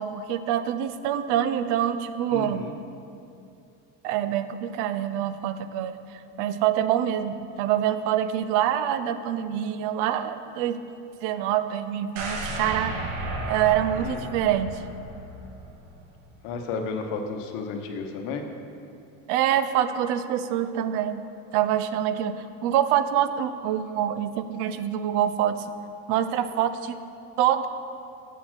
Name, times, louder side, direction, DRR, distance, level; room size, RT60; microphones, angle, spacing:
voice 1, 0.0-2.7 4.0-6.0 6.4-13.0 13.5-14.8 19.3-21.2 21.5-25.6 26.1-27.0 27.4-27.7, right 10 dB, 90° right, 12 dB, 0.5 m, -25 dB
voice 2, 2.3-2.7 14.0-14.2 16.4-18.4, left 4 dB, 80° left, 5 dB, 0.9 m, -32 dB
sound 1, 12.2-16.1 16.5-16.6, right 2 dB, 65° right, 1.0 m, -34 dB
7.1 x 4.2 x 6.0 m, 2.6 s
cardioid pair, 135°, 33 cm